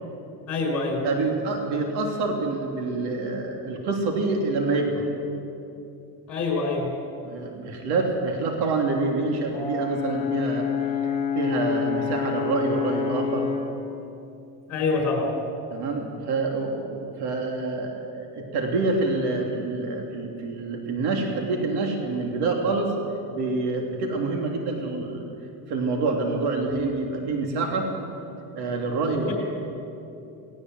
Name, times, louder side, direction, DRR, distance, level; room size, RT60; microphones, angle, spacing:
voice 1, 0.5-1.0 6.3-6.9 14.7-15.3 29.1-29.3, left 3 dB, 40° left, 2 dB, 5.5 m, -25 dB
voice 2, 1.0-5.1 7.2-10.7 11.3-13.5 15.7-22.9 23.3-25.2 25.7-27.9 28.5-29.3, right 3 dB, 65° right, 2 dB, 3.2 m, -27 dB
Brass instrument, 9.5-13.8, left 6 dB, 15° left, 2.1 m, -27 dB
18.5 x 18.5 x 7.9 m, 2.7 s
cardioid pair, 135°, 41 cm